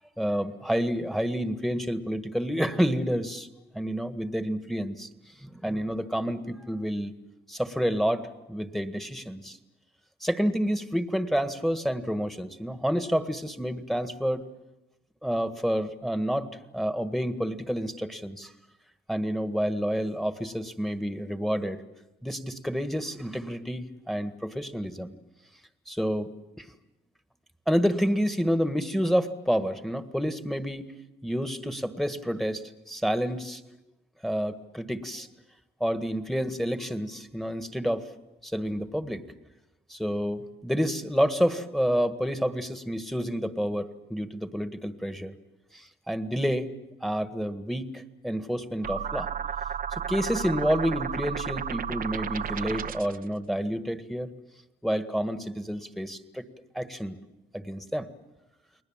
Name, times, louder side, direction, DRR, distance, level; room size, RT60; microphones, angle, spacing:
voice 1, 0.2-3.5 3.7-5.1 5.4-7.1 7.5-9.6 10.2-14.4 15.2-16.5 16.7-18.5 19.1-21.8 22.2-25.1 25.9-26.3 26.6-26.7 27.7-30.9 31.2-33.6 34.2-35.3 35.8-38.0 38.4-39.2 39.9-45.3 45.7-46.7 47.0-49.3 49.9-54.3 54.8-56.5 56.7-57.2 57.5-58.1, equal, ahead, 9 dB, 1.7 m, -29 dB
sound 1, 48.8-53.2, right 8 dB, 45° right, 0.9 m, -33 dB
30.0 x 20.5 x 7.5 m, 1.0 s
cardioid pair, 90°, 20 cm